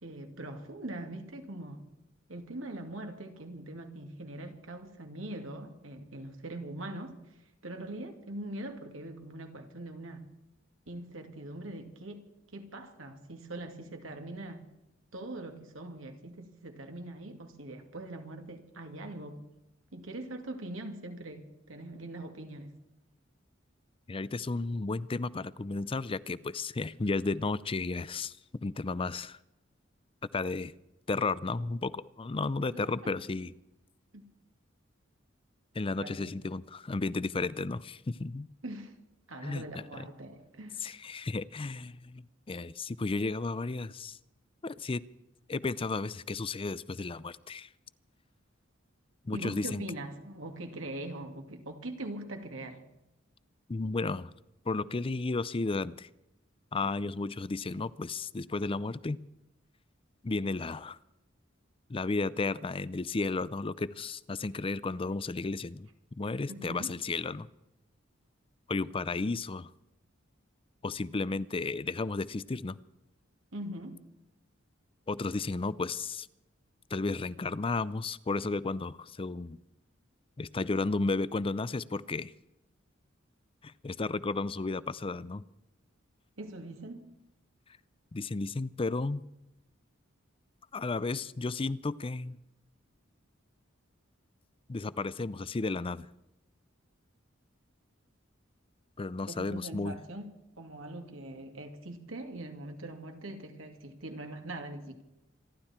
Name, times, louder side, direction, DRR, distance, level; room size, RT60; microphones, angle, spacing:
voice 1, 0.0-1.8 2.3-7.3 7.6-10.3 10.9-14.6 15.1-19.4 19.9-22.8 32.7-33.1 34.1-34.2 36.0-36.2 38.6-38.9 39.3-40.8 49.3-52.8 66.5-66.9 73.5-74.0 86.4-87.1 99.3-100.3 100.6-105.0, right 1 dB, 75° right, 2.4 m, -42 dB
voice 2, 24.1-29.4 30.3-30.7 31.1-33.5 35.7-38.5 39.4-39.6 40.0-40.1 40.8-44.2 44.6-45.0 45.5-47.7 49.2-49.8 53.7-54.3 54.7-56.1 56.7-59.2 60.2-61.0 61.9-65.9 66.2-67.5 68.7-69.7 70.8-72.8 75.1-76.3 76.9-79.6 80.4-82.3 83.6-85.4 88.1-89.2 90.7-92.4 94.7-96.1 99.0-100.0, left 3 dB, 25° left, 0.5 m, -33 dB
27.0 x 12.0 x 4.4 m
head